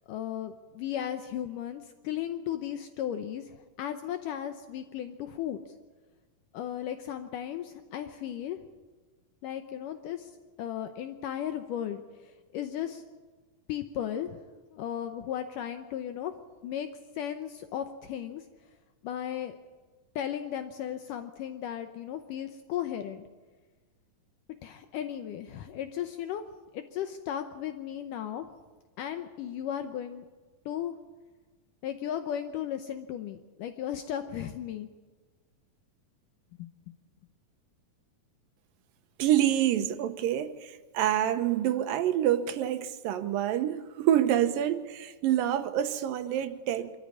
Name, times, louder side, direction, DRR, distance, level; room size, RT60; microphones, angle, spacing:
voice 1, 0.1-5.7 6.5-8.6 9.4-10.3 10.6-13.0 13.7-14.4 14.7-16.3 16.6-16.9 17.2-18.5 19.0-19.6 20.2-23.2 24.6-26.4 26.7-28.5 29.0-30.2 30.7-30.9 31.8-34.9 36.6-36.9, left 10 dB, 75° left, 2.3 m, -35 dB
voice 2, 39.2-47.0, right 11 dB, 80° right, 2.6 m, -27 dB
25.5 x 14.0 x 8.5 m
omnidirectional pair, 4.1 m